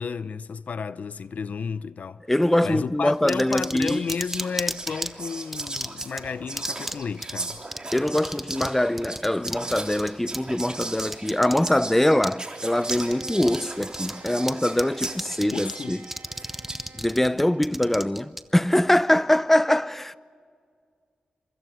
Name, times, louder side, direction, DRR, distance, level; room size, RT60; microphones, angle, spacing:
voice 1, 0.0-2.2 2.6-7.6 15.5-16.0, left 5 dB, 70° left, 0.6 m, -32 dB
voice 2, 2.3-4.0 7.9-16.0 17.0-20.2, left 1 dB, 10° left, 0.6 m, -23 dB
Whispering, 3.0-3.3 3.6-16.9, right 2 dB, 30° right, 3.4 m, -37 dB
sound 1, 3.3-5.1 5.5-6.2 6.6-7.0 7.2-7.3 7.7-8.7 9.0-11.7 12.2-12.4 12.8-13.6 13.8-14.5 14.8-15.7 16.0-18.4, right 1 dB, 5° right, 1.0 m, -32 dB
Bowed string instrument, 12.5-18.5, right 4 dB, 60° right, 1.2 m, -50 dB
26.5 x 24.0 x 6.4 m
wide cardioid pair, 95°, 3 cm